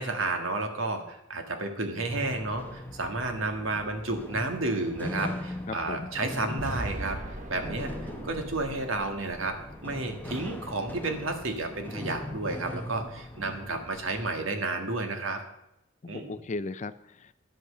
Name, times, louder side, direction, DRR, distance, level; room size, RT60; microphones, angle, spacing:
voice 1, 0.0-7.2 7.5-7.9 8.2-15.4 16.1-16.4, right 2 dB, 75° right, 5 dB, 1.7 m, -31 dB
sound 1, 2.1-14.4, left 1 dB, 10° left, 0.9 m, -40 dB
voice 2, 5.7-6.1 16.0-17.3, left 3 dB, 35° left, 14 dB, 0.4 m, -37 dB
sound 2, 6.6-10.7, right 1 dB, 35° right, 1.2 m, -40 dB
11.0 x 8.3 x 6.6 m, 0.85 s
head